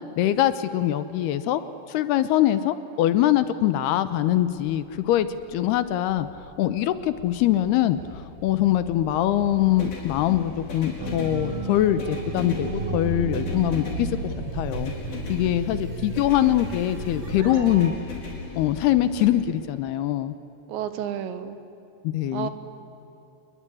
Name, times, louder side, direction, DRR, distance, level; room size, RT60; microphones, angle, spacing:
voice 1, 0.2-1.6 1.9-6.3 6.6-14.9 15.3-17.9 18.6-20.3 22.0-22.5, left 12 dB, 75° left, 13 dB, 2.7 m, -23 dB
sound 1, 4.5-19.3, left 4 dB, 55° left, 6.3 m, -38 dB
sound 2, 11.0-18.0, right 3 dB, 40° right, 2.8 m, -33 dB
voice 2, 20.7-21.6 22.3-22.5, right 10 dB, 85° right, 11 dB, 3.7 m, -31 dB
27.5 x 21.5 x 9.9 m, 3.0 s
omnidirectional pair, 5.0 m